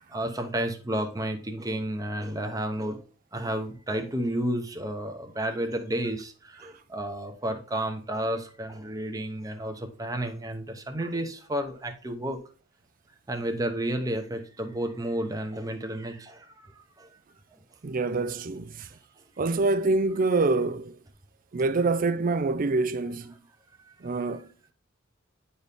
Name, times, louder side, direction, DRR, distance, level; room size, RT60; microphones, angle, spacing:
voice 1, 0.0-3.0 3.3-12.4 13.3-17.1 17.5-17.6 23.8-24.2, right 1 dB, 20° right, 0.9 m, -32 dB
voice 2, 17.8-18.9 19.4-21.0 21.5-23.3 24.0-24.5, right 3 dB, 45° right, 0.5 m, -26 dB
9.5 x 4.2 x 3.5 m
head